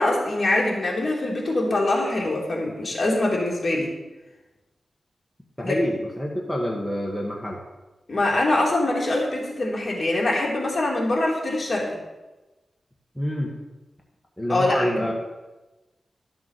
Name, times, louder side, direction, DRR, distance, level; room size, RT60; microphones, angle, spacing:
voice 1, 0.0-3.9 5.6-5.7 8.1-12.0 14.5-15.0, left 2 dB, 35° left, -3 dB, 3.2 m, -24 dB
voice 2, 5.6-7.6 13.1-13.5 14.4-15.1, equal, ahead, -2 dB, 1.6 m, -27 dB
13.0 x 7.0 x 6.8 m, 1.1 s
wide cardioid pair, 120°, 0 cm